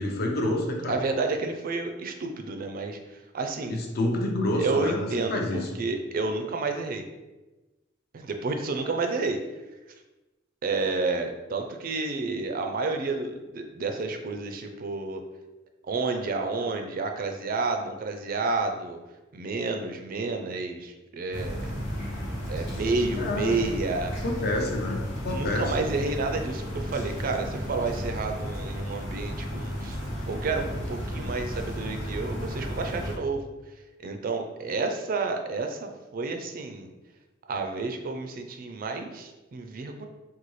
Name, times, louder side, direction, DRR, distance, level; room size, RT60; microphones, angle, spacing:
voice 1, 0.0-1.0 3.7-5.7 23.2-23.7 24.2-25.7, left 1 dB, 55° left, 1 dB, 0.6 m, -28 dB
voice 2, 0.9-3.0 3.3-3.8 4.6-7.0 8.1-9.4 10.6-15.2 15.8-19.0 19.3-21.7 22.5-24.1 25.3-30.0 30.3-33.4 34.0-36.9 37.5-40.1, right 3 dB, 45° right, 5 dB, 0.4 m, -30 dB
sound 1, 21.3-33.1, equal, 85° left, 1.0 m, -33 dB
4.0 x 2.2 x 3.1 m, 1.1 s
head